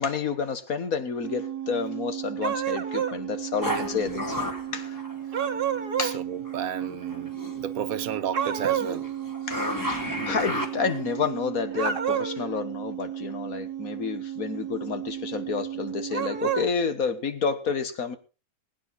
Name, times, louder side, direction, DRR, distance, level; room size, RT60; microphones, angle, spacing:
voice 1, 0.0-4.4 4.7-5.0 6.0-6.2 9.5-9.7 10.2-18.2, left 5 dB, 70° left, 1.8 m, -30 dB
sound 1, 1.2-16.6, right 11 dB, 85° right, 1.4 m, -35 dB
sound 2, 2.4-3.2 5.3-6.2 8.3-9.0 11.7-12.5 16.1-16.7, right 8 dB, 45° right, 1.1 m, -28 dB
sound 3, 3.6-5.8 6.5-7.6 8.1-11.2, equal, 15° left, 2.2 m, -33 dB
voice 2, 6.0-9.1, right 9 dB, 70° right, 1.3 m, -33 dB
21.0 x 9.5 x 4.1 m
omnidirectional pair, 1.6 m